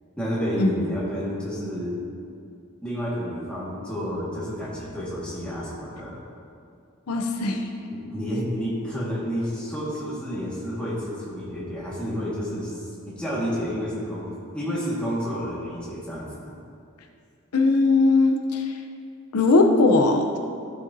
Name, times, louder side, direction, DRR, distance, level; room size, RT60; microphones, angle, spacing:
voice 1, 0.2-2.0 2.8-6.2 7.9-14.3 14.5-16.5, equal, 5° left, -8 dB, 1.7 m, -30 dB
voice 2, 7.1-7.7 17.5-18.7 19.3-20.4, left 3 dB, 90° left, 3 dB, 0.7 m, -19 dB
12.5 x 6.3 x 2.7 m, 2.4 s
head